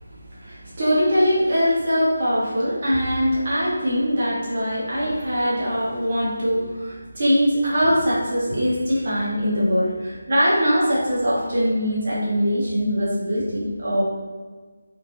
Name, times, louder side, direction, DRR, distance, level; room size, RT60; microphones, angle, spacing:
voice 1, 0.4-14.0, equal, 40° right, -8 dB, 0.8 m, -22 dB
3.0 x 2.0 x 2.8 m, 1.4 s
figure-of-eight pair, 155°, 0 cm